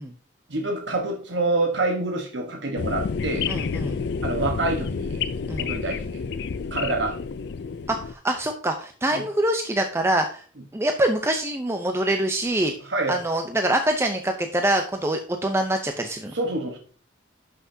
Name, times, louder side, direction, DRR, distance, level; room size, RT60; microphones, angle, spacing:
voice 1, 0.5-3.5 4.2-5.2 5.6-6.0 6.7-7.2 9.1-9.3 12.9-13.2 16.3-16.8, right 2 dB, 65° right, 3 dB, 1.2 m, -26 dB
sound 1, 2.8-8.1, left 5 dB, 60° left, 0.4 m, -29 dB
voice 2, 3.5-4.0 5.5-5.7 7.9-10.4 10.7-12.7 13.1-16.3, right 1 dB, 15° right, 5 dB, 0.6 m, -24 dB
11.5 x 6.0 x 2.7 m, 0.42 s
head